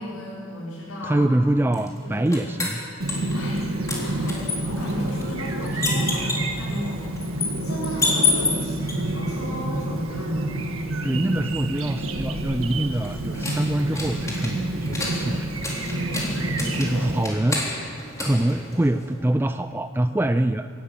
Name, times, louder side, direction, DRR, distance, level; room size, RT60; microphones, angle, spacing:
voice 1, 0.0-1.3 1.6-1.7 2.0-2.4 3.1-10.7 15.9-17.2, left 1 dB, 80° left, -9 dB, 5.4 m, -35 dB
voice 2, 1.0-2.8 11.0-15.6 16.8-17.6 18.2-20.7, right 1 dB, 10° right, 9 dB, 0.4 m, -24 dB
sound 1, 1.7-3.6 3.9-8.9 11.7-19.2, left 3 dB, 15° left, 3.8 m, -30 dB
Chirp tweet, 3.0-17.2, right 1 dB, 70° right, 1.6 m, -28 dB
24.5 x 12.0 x 8.9 m, 2.5 s
head